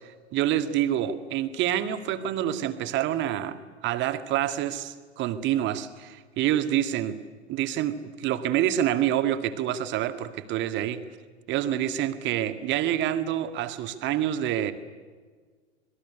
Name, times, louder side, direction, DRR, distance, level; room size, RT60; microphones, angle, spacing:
voice 1, 0.3-7.2 7.5-11.0 11.5-14.7, right 11 dB, 30° right, 9 dB, 2.0 m, -27 dB
26.5 x 21.0 x 9.8 m, 1.5 s
figure-of-eight pair, 95°, 35 cm